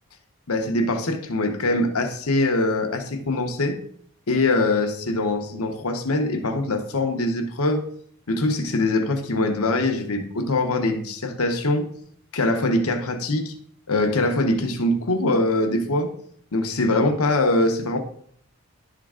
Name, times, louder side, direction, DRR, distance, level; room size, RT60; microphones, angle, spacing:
voice 1, 0.5-3.8 4.3-7.8 8.3-11.9 12.3-13.5 13.9-16.1 16.5-18.0, left 2 dB, 80° left, 5 dB, 0.9 m, -23 dB
11.0 x 3.7 x 3.7 m, 0.63 s
head